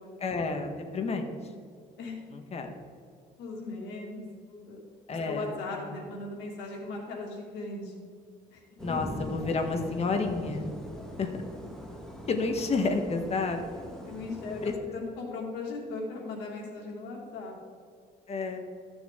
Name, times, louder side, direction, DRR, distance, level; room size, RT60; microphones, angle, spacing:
voice 1, 0.2-1.3 2.3-2.7 5.1-5.5 5.8-5.9 8.8-10.7 11.2-11.3 12.3-13.6 14.6-14.7 18.3-18.6, left 4 dB, 40° left, 5 dB, 1.4 m, -30 dB
voice 2, 3.4-4.8 5.1-7.9 8.5-8.6 8.9-9.0 14.0-17.6, left 3 dB, 90° left, -1 dB, 2.5 m, -38 dB
sound 1, 8.8-14.8, equal, 5° left, 1.6 m, -41 dB
14.0 x 7.0 x 3.8 m, 2.2 s
cardioid pair, 110°, 17 cm